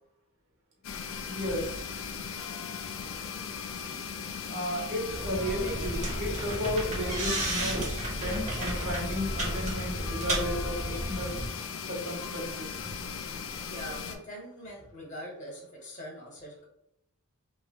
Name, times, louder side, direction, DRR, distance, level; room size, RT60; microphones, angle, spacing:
sound 1, 0.8-14.2, left 6 dB, 60° left, 0.4 m, -38 dB
voice 1, 1.2-1.9 4.5-11.3 11.8-12.9, equal, 60° right, -2 dB, 1.0 m, -34 dB
sound 2, 5.1-11.5, right 1 dB, 30° right, 0.8 m, -33 dB
voice 2, 13.7-16.7, equal, 35° left, -2 dB, 0.9 m, -43 dB
3.0 x 2.3 x 2.7 m, 0.76 s
head